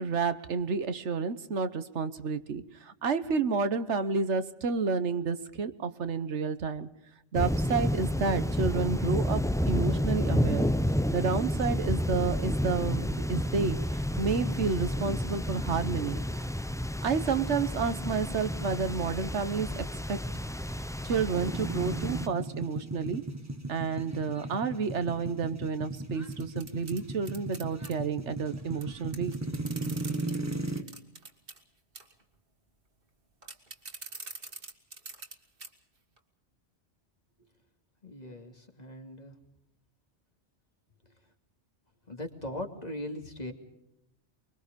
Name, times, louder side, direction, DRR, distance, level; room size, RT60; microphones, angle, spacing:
voice 1, 0.0-6.9 7.3-10.7 11.1-16.2 17.0-20.2 21.0-23.2 23.7-29.4, right 5 dB, 90° right, 12 dB, 1.4 m, -30 dB
sound 1, 7.3-22.3, equal, 5° left, 0.4 m, -30 dB
sound 2, 21.3-30.8, right 2 dB, 15° right, 1.5 m, -36 dB
sound 3, 26.3-27.9 28.8-28.9 29.1-31.6 31.9-32.2 33.4-35.3 35.6-35.7 36.2-36.3, right 3 dB, 55° right, 2.2 m, -44 dB
voice 2, 38.0-39.3 42.1-43.5, left 1 dB, 35° left, 4 dB, 2.7 m, -39 dB
24.5 x 23.0 x 5.2 m, 0.87 s
omnidirectional pair, 1.1 m